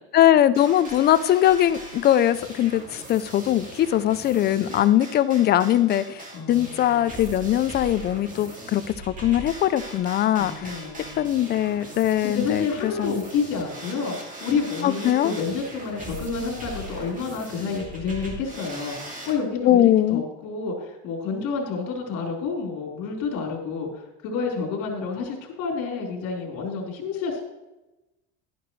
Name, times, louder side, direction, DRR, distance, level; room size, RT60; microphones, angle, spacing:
voice 1, 0.1-2.8 3.1-6.0 6.5-10.5 11.2-13.1 14.8-15.3 19.6-20.2, left 12 dB, 30° left, 15 dB, 0.4 m, -21 dB
sound 1, 0.6-19.4, right 1 dB, 20° right, 2.4 m, -40 dB
voice 2, 6.3-7.0 10.3-11.4 12.2-27.4, left 5 dB, 55° left, 0 dB, 3.9 m, -29 dB
12.0 x 11.0 x 3.1 m, 1.0 s
cardioid pair, 145°, 34 cm